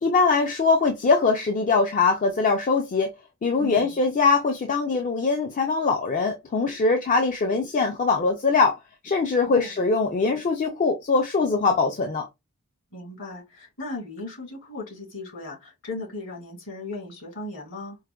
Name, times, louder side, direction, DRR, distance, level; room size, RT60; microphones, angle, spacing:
voice 1, 0.0-3.1 3.4-8.8 9.0-12.3, left 4 dB, 35° left, 0.4 m, -22 dB
voice 2, 3.6-3.9 9.5-9.8 12.9-18.0, left 2 dB, 60° left, 2.0 m, -37 dB
4.7 x 2.1 x 2.2 m
head